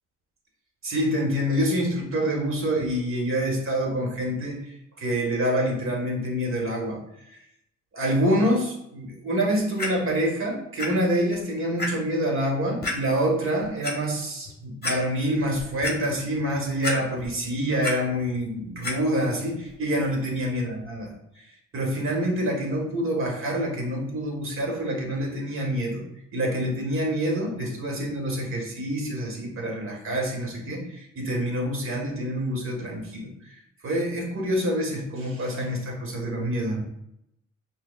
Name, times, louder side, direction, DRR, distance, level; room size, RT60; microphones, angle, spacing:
voice 1, 0.8-4.7 5.0-7.0 7.9-21.1 21.7-26.0 26.3-33.3 33.8-36.8, equal, 45° right, 0 dB, 1.3 m, -26 dB
Clock, 9.8-9.9 10.8-10.9 11.3-11.4 11.8-11.9 12.8-13.0 13.6-13.9 14.5-14.6 14.8-15.0 15.4-16.0 16.8-17.3 17.6-17.9 18.8-18.9 19.7-19.8, left 2 dB, 30° left, 0.9 m, -29 dB
5.8 x 2.2 x 2.3 m, 0.80 s
cardioid pair, 90°, 30 cm